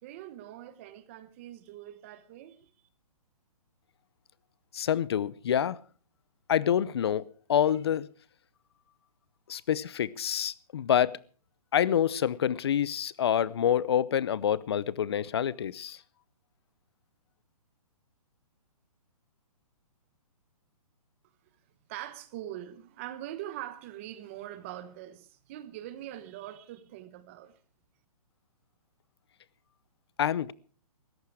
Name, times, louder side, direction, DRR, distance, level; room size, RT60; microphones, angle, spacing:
voice 1, 0.0-2.7 21.9-27.6, right 13 dB, 20° right, 1.0 m, -43 dB
voice 2, 4.7-5.8 6.5-8.1 9.5-11.2 11.7-16.0 30.2-30.5, left 9 dB, 40° left, 0.7 m, -27 dB
19.0 x 14.5 x 4.8 m
hypercardioid pair, 170°, 19 cm